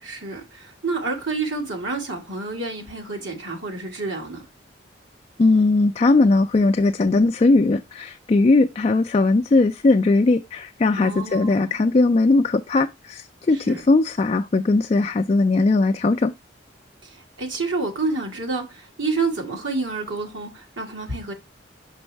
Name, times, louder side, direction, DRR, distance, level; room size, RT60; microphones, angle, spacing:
voice 1, 0.0-4.5 11.0-11.8 13.5-13.8 17.0-21.3, right 3 dB, 85° right, 2.0 m, -29 dB
voice 2, 5.4-16.3, left 3 dB, 35° left, 0.3 m, -19 dB
6.2 x 5.3 x 3.3 m
head